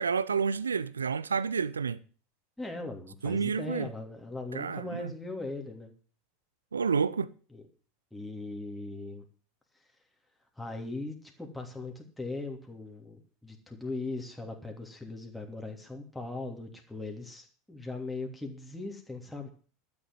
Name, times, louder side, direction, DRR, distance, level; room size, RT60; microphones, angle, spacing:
voice 1, 0.0-2.0 3.2-3.9 4.5-5.1 6.7-7.3, right 6 dB, 80° right, 0.7 m, -29 dB
voice 2, 2.6-5.9 7.5-7.6 8.1-9.2 10.6-19.5, left 2 dB, 5° left, 3.1 m, -39 dB
12.5 x 7.2 x 9.3 m
figure-of-eight pair, 80°, 0 cm